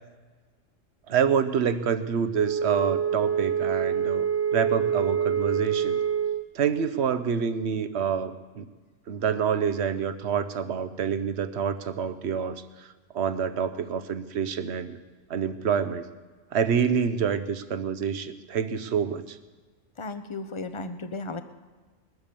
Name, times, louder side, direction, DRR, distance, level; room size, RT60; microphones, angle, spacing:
voice 1, 1.1-4.2 4.5-6.0 6.5-8.6 9.1-12.6 13.1-15.0 15.3-16.0 16.5-19.4, right 7 dB, 60° right, 12 dB, 1.0 m, -27 dB
Wind instrument woodwind instrument, 2.3-6.5, right 8 dB, 15° right, 0.5 m, -26 dB
voice 2, 20.0-21.4, left 3 dB, 30° left, 10 dB, 0.6 m, -35 dB
21.0 x 8.1 x 6.9 m, 1.3 s
omnidirectional pair, 1.3 m